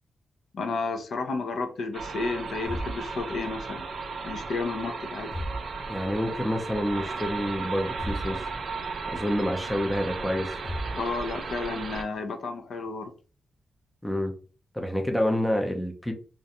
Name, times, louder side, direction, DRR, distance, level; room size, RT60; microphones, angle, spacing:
voice 1, 0.5-3.8 4.2-5.3 11.0-13.1, left 3 dB, 70° left, 5 dB, 0.4 m, -32 dB
sound 1, 1.9-12.0, right 4 dB, 60° right, 0.4 m, -35 dB
sound 2, 2.7-3.8 5.3-6.3 8.0-9.1 10.6-11.6, equal, 50° left, 0.8 m, -37 dB
voice 2, 5.9-8.4 9.1-10.5 14.0-14.3 14.7-16.1, equal, 5° left, 4 dB, 0.4 m, -28 dB
2.4 x 2.1 x 2.7 m, 0.36 s
wide cardioid pair, 155°, 0 cm